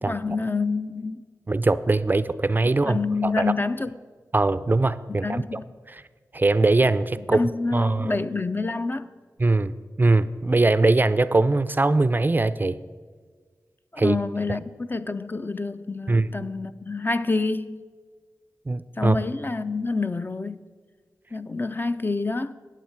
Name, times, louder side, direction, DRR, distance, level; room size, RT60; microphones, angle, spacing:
voice 1, 0.0-1.2 2.8-4.0 5.2-5.7 7.2-9.1 13.9-17.8 19.0-20.6 21.3-22.5, left 3 dB, 30° left, 0.5 m, -27 dB
voice 2, 1.5-3.0 3.2-3.5 4.3-5.6 5.9-6.0 6.3-7.4 7.7-8.2 9.4-12.8 14.0-14.2 16.1-16.3 18.7-19.2, right 2 dB, 30° right, 0.4 m, -21 dB
13.5 x 9.0 x 4.6 m
cardioid pair, 50°, 6 cm